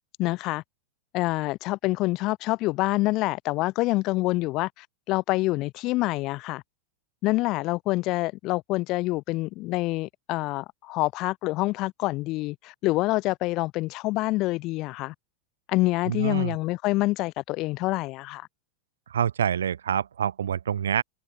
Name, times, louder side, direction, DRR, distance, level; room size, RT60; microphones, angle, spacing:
voice 1, 0.2-0.6 1.1-6.6 7.2-15.1 15.7-18.5, left 20 dB, 40° left, 3.1 m, -26 dB
voice 2, 16.1-16.6 19.1-21.0, right 8 dB, 65° right, 7.8 m, -26 dB
figure-of-eight pair, 90°, 0 cm